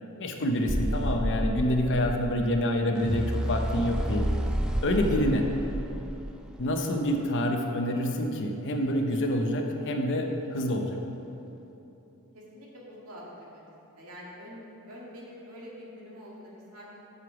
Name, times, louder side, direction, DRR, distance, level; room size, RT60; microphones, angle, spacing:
voice 1, 0.0-4.3 4.8-5.5 6.6-11.0, left 1 dB, 55° left, 3 dB, 0.8 m, -27 dB
sound 1, 0.7-6.8, equal, 5° right, 0.4 m, -30 dB
voice 2, 12.3-13.2 13.5-13.7 14.0-17.0, equal, 70° right, -5 dB, 2.1 m, -46 dB
7.7 x 6.7 x 5.0 m, 3.0 s
head